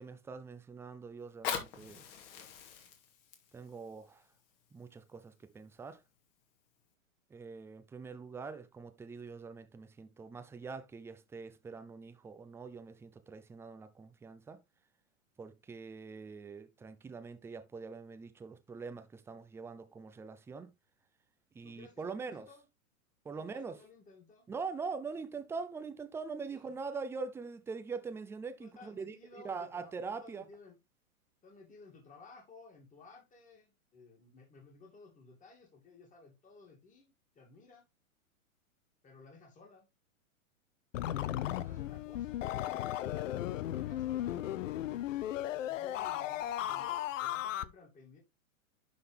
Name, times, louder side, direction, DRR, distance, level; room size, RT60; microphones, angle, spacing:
voice 1, 0.0-2.0 3.5-4.2 4.7-6.0 7.3-14.6 15.4-20.7 21.5-22.5 23.2-23.7 24.5-30.4, right 4 dB, 5° right, 0.5 m, -43 dB
Fire, 1.2-6.2 6.8-6.9, left 8 dB, 40° left, 2.3 m, -43 dB
voice 2, 21.6-22.7 23.3-24.5 26.5-26.7 28.6-30.8 31.4-37.9 39.0-39.9 41.5-44.4 45.4-48.2, left 4 dB, 20° left, 2.5 m, -57 dB
sound 1, 40.9-47.6, left 13 dB, 60° left, 0.7 m, -36 dB
11.5 x 3.9 x 3.4 m
hypercardioid pair, 125°, 43 cm